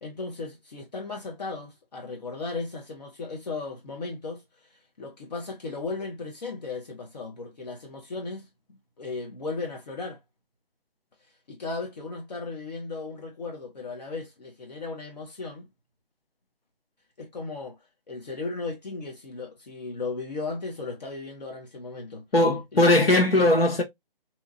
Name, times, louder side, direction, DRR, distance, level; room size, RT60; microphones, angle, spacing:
voice 1, 0.0-4.4 5.0-8.5 9.0-10.2 11.5-15.6 17.2-17.8 18.1-22.2 22.7-23.5, left 3 dB, 45° left, 0.9 m, -36 dB
voice 2, 22.3-23.8, left 1 dB, 85° left, 1.3 m, -19 dB
2.9 x 2.3 x 2.5 m
figure-of-eight pair, 155°, 29 cm